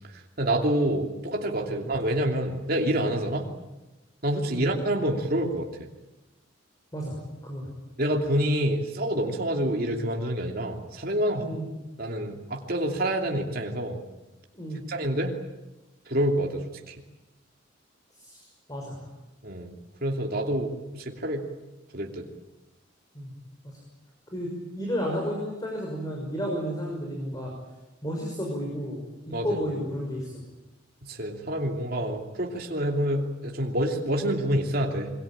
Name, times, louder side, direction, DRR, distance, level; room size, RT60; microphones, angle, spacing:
voice 1, 0.4-3.5 4.2-5.7 8.0-11.5 12.0-14.0 14.9-15.3 16.1-16.9 19.4-19.7 20.0-21.4 21.9-22.3 29.3-29.6 31.0-35.1, right 1 dB, 50° right, 2 dB, 2.9 m, -27 dB
voice 2, 6.9-7.7 11.4-11.7 14.5-14.8 18.2-19.0 23.1-23.3 23.6-23.8 24.3-27.5 28.0-29.0 29.2-30.3, equal, 20° left, -1 dB, 6.1 m, -32 dB
27.0 x 23.0 x 8.8 m, 1.0 s
head